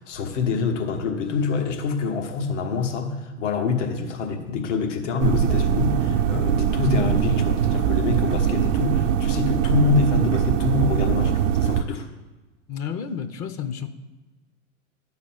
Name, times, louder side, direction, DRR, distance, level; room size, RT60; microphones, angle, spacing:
voice 1, 0.0-12.1, left 4 dB, 70° left, 3 dB, 1.4 m, -25 dB
sound 1, 5.2-11.8, right 8 dB, 75° right, 0.7 m, -22 dB
voice 2, 12.7-13.9, left 7 dB, 40° left, 8 dB, 0.8 m, -31 dB
11.5 x 4.0 x 7.4 m, 1.2 s
hypercardioid pair, 95°, 38 cm